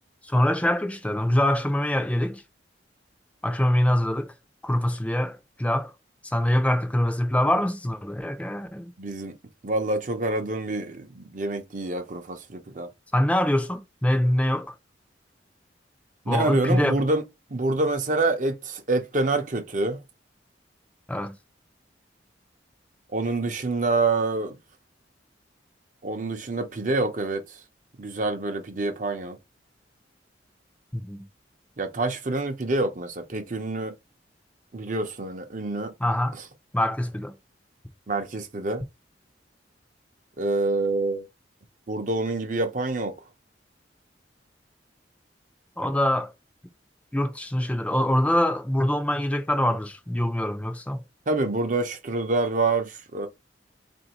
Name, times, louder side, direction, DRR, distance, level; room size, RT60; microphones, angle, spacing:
voice 1, 0.2-2.4 3.4-4.3 4.6-5.9 6.2-8.9 13.1-14.7 16.3-17.0 21.1-21.4 30.9-31.3 36.0-36.4 36.7-37.3 45.8-46.3 47.1-51.0, left 1 dB, 5° left, 0.5 m, -24 dB
voice 2, 9.0-9.3 9.6-12.9 16.3-17.2 17.5-20.0 23.1-24.6 26.0-27.6 28.0-29.4 31.8-33.9 34.7-35.9 38.1-38.8 40.4-41.2 41.9-43.1 51.3-53.3, right 2 dB, 45° right, 0.7 m, -26 dB
4.3 x 2.6 x 2.9 m
head